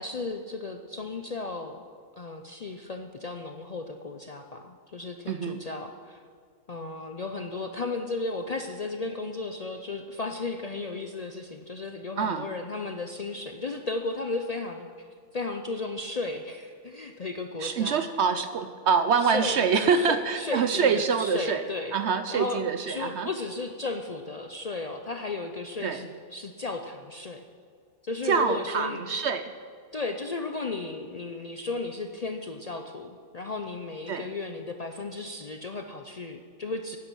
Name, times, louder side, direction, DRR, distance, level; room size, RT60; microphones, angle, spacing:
voice 1, 0.0-1.8 2.2-6.2 6.7-15.1 15.3-18.0 19.3-20.9 21.2-21.9 22.3-27.4 28.0-29.0 29.9-37.0, left 3 dB, 65° left, 5 dB, 0.3 m, -34 dB
voice 2, 5.3-5.6 12.2-12.5 17.6-21.6 21.9-23.3 25.8-26.0 28.2-29.5 34.1-34.3, right 6 dB, 65° right, 10 dB, 0.7 m, -25 dB
10.5 x 10.0 x 6.1 m, 2.2 s
omnidirectional pair, 1.5 m